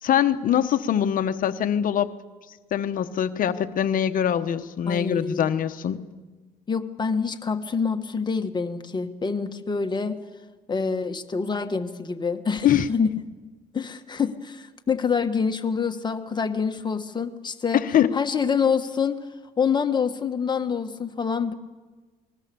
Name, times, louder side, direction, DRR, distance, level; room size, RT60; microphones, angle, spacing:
voice 1, 0.0-2.1 2.7-6.0 12.6-12.9 17.7-18.2, left 9 dB, 55° left, 9 dB, 1.1 m, -23 dB
voice 2, 4.9-5.5 6.7-10.2 10.7-13.2 13.7-17.8 18.1-19.2 19.6-21.5, left 5 dB, 25° left, 6 dB, 1.5 m, -26 dB
28.5 x 21.0 x 7.0 m, 1.3 s
cardioid pair, 110°, 17 cm